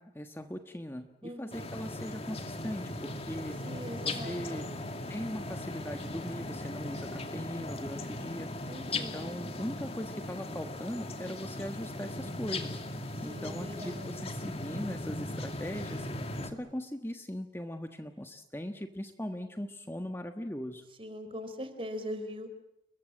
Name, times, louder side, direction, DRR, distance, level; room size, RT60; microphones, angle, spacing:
voice 1, 0.0-3.6 4.0-4.7 5.1-20.9, equal, 15° left, 6 dB, 1.3 m, -40 dB
voice 2, 1.2-1.8 3.6-4.7 8.7-9.3 13.3-14.4 21.0-22.5, equal, 30° right, 10 dB, 3.7 m, -41 dB
sound 1, 1.5-16.5, left 2 dB, 35° left, 2.3 m, -38 dB
30.0 x 22.5 x 7.5 m, 0.79 s
head